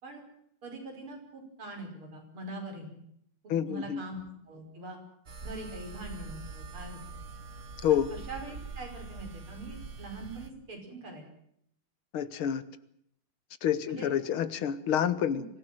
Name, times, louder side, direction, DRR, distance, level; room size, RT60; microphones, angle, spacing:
voice 1, 0.6-3.0 3.4-5.0 5.4-7.0 8.1-11.3 13.9-14.1 15.3-15.5, right 2 dB, 85° right, 3 dB, 6.2 m, -43 dB
voice 2, 3.5-4.0 7.8-8.1 12.1-12.6 13.6-15.4, left 9 dB, 80° left, 14 dB, 2.1 m, -28 dB
sound 1, 5.3-10.5, right 4 dB, 40° right, 1.7 m, -43 dB
24.5 x 16.5 x 9.1 m, 0.71 s
omnidirectional pair, 2.3 m